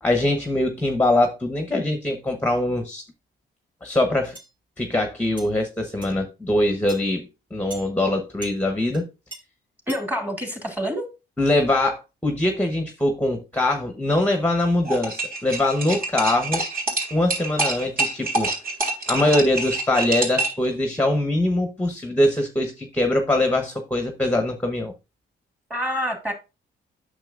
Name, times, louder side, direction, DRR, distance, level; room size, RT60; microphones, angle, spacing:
voice 1, 0.0-3.0 3.8-4.4 4.8-7.2 7.5-9.1 11.4-16.6 17.1-18.5 19.1-24.9, left 1 dB, 5° left, 1.1 m, -22 dB
sound 1, 4.3-4.5 5.4-5.5 6.0-6.2 6.9-7.0 7.7-7.9 8.4-8.6 8.9-9.0 9.3-9.4 9.9-10.0, right 2 dB, 25° right, 2.4 m, -39 dB
voice 2, 9.9-11.1 25.7-26.3, equal, 10° right, 2.2 m, -27 dB
sound 2, 14.8-20.6, right 2 dB, 50° right, 3.8 m, -26 dB
8.8 x 6.6 x 2.5 m
cardioid pair, 90°, 20 cm